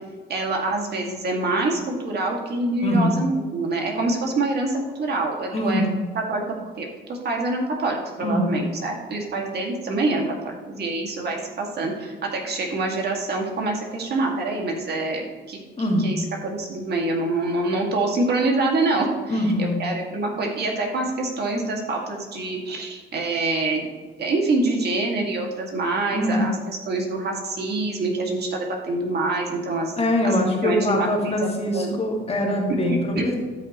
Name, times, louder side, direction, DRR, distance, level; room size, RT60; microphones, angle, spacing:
voice 1, 0.3-5.8 6.1-15.6 16.0-23.8 24.2-29.9 30.2-31.9 33.2-33.3, right 2 dB, 55° right, 0 dB, 2.1 m, -26 dB
voice 2, 2.8-3.2 5.5-6.0 8.2-8.6 15.8-16.1 19.3-19.8 26.1-26.5 30.0-33.3, left 1 dB, 30° left, 0 dB, 2.0 m, -23 dB
12.5 x 5.8 x 3.0 m, 1.4 s
cardioid pair, 90°, 20 cm